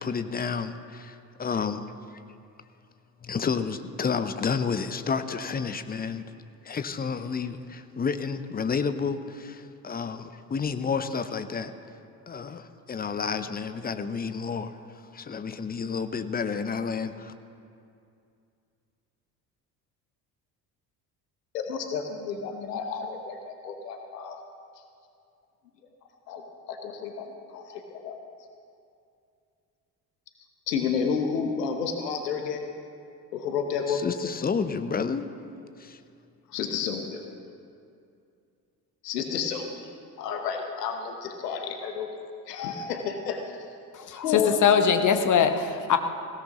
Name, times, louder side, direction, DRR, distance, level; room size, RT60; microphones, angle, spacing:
voice 1, 0.0-1.9 3.2-6.3 6.6-11.7 12.3-14.8 15.1-17.3 33.9-35.3 35.8-36.0, left 5 dB, 20° left, 11 dB, 0.7 m, -30 dB
voice 2, 21.5-24.4 26.3-26.4 26.7-28.2 30.7-32.7 33.3-34.0 36.5-37.2 39.0-39.9 40.2-42.1 42.5-43.7 44.2-44.5, left 6 dB, 75° left, 5 dB, 1.1 m, -31 dB
voice 3, 43.9-46.0, left 7 dB, 40° left, 7 dB, 1.2 m, -22 dB
20.0 x 17.0 x 3.0 m, 2.5 s
figure-of-eight pair, 55°, 49 cm